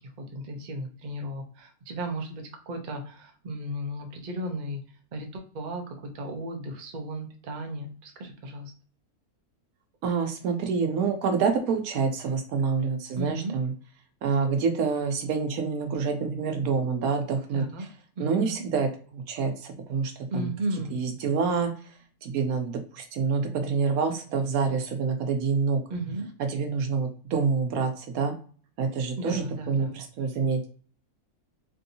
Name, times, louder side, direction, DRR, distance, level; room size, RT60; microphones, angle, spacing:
voice 1, 0.2-4.8 5.1-8.7 13.2-13.5 17.5-17.8 18.2-18.6 20.3-21.0 25.9-26.3 29.2-29.9, right 1 dB, 45° right, 3 dB, 0.6 m, -35 dB
voice 2, 10.0-13.7 14.2-17.6 18.2-20.5 20.9-21.7 22.2-25.8 26.5-28.3 28.8-30.7, right 5 dB, 80° right, 5 dB, 1.1 m, -27 dB
3.4 x 2.6 x 2.7 m, 0.43 s
omnidirectional pair, 1.5 m